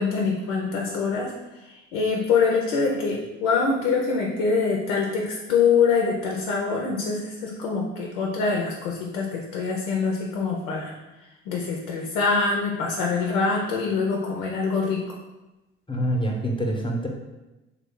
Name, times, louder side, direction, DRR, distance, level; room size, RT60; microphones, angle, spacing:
voice 1, 0.0-10.9 11.5-15.1, left 5 dB, 85° left, 0 dB, 0.5 m, -24 dB
voice 2, 15.9-17.1, right 1 dB, 15° left, 0 dB, 0.7 m, -25 dB
3.2 x 2.3 x 3.6 m, 1.0 s
hypercardioid pair, 50°, 33 cm